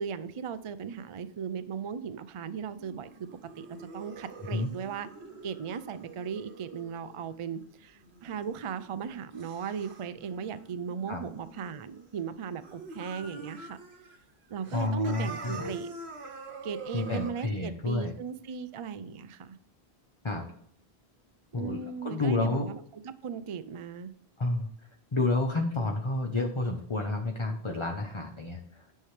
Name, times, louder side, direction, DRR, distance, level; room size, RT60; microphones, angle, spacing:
voice 1, 0.0-3.3 3.6-5.1 5.4-13.8 14.5-15.9 16.6-19.6 21.5-24.1, right 7 dB, 45° right, 12 dB, 0.4 m, -37 dB
sound 1, 2.6-12.2 12.5-14.2 14.5-17.3, right 3 dB, 85° right, 1.3 m, -46 dB
voice 2, 14.7-15.7 16.9-18.1 20.2-20.4 21.5-22.7 24.4-24.7 25.1-28.9, left 2 dB, 30° left, 2 dB, 0.8 m, -30 dB
9.8 x 5.6 x 3.2 m, 0.68 s
omnidirectional pair, 1.1 m